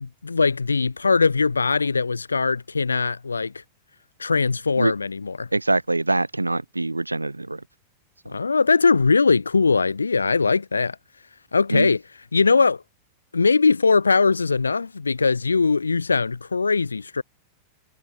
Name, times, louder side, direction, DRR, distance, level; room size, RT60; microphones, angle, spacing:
voice 1, 0.0-3.5 4.2-5.5 8.3-11.0 11.5-12.0 12.3-12.8 13.3-17.2, left 4 dB, 75° left, 0.6 m, -20 dB
voice 2, 5.5-7.6 8.3-8.4 11.7-11.9, right 2 dB, 85° right, 2.2 m, -24 dB
figure-of-eight pair, 90°, 0 cm